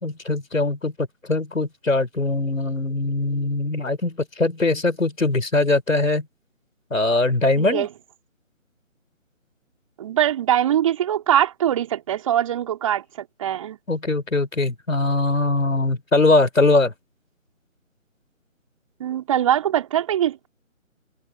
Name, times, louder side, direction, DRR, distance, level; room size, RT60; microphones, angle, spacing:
voice 1, 0.0-6.3 6.9-7.9 13.9-16.9, left 2 dB, 70° left, 4.9 m, -21 dB
voice 2, 7.6-7.9 10.0-13.8 19.0-20.5, right 11 dB, 25° right, 4.5 m, -22 dB
figure-of-eight pair, 155°, 41 cm